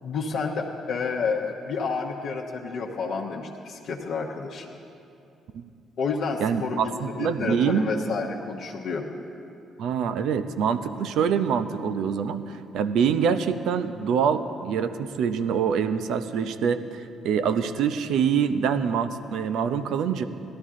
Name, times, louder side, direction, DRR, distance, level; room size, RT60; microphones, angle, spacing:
voice 1, 0.0-4.7 6.0-9.0, left 4 dB, 65° left, -2 dB, 1.0 m, -30 dB
voice 2, 6.4-7.9 9.8-20.2, right 7 dB, 70° right, 11 dB, 0.6 m, -25 dB
18.0 x 12.5 x 3.7 m, 2.6 s
hypercardioid pair, 50°, 0 cm